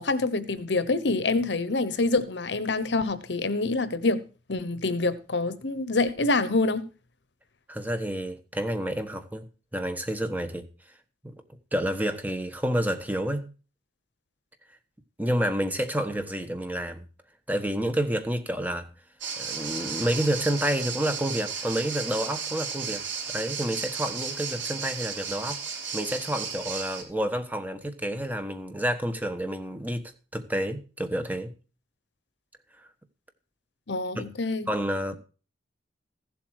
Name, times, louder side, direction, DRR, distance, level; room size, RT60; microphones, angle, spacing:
voice 1, 0.0-4.2 4.5-6.9 33.9-34.7, left 3 dB, 65° left, 1.0 m, -26 dB
voice 2, 7.7-9.5 9.7-10.6 11.2-11.3 11.7-13.4 15.2-17.0 17.5-18.9 19.4-25.6 25.9-31.5 34.1-34.3 34.7-35.2, right 1 dB, 10° right, 1.3 m, -29 dB
sound 1, 19.2-27.0, right 6 dB, 90° right, 3.5 m, -34 dB
15.0 x 7.7 x 4.8 m
head